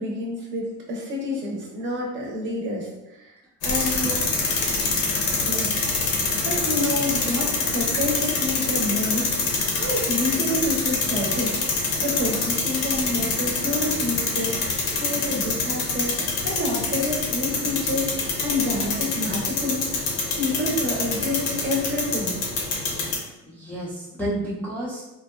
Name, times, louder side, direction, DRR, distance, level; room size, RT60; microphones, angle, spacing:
voice 1, 0.0-3.3 3.6-4.1 5.3-5.7 6.1-22.4, left 1 dB, 40° right, -2 dB, 0.6 m, -28 dB
sound 1, 3.6-23.2, left 4 dB, 75° left, 0.7 m, -25 dB
voice 2, 3.7-4.1 4.5-4.7 23.4-25.0, right 1 dB, 5° left, -8 dB, 0.3 m, -31 dB
2.7 x 2.2 x 2.2 m, 0.98 s
cardioid pair, 140°, 30 cm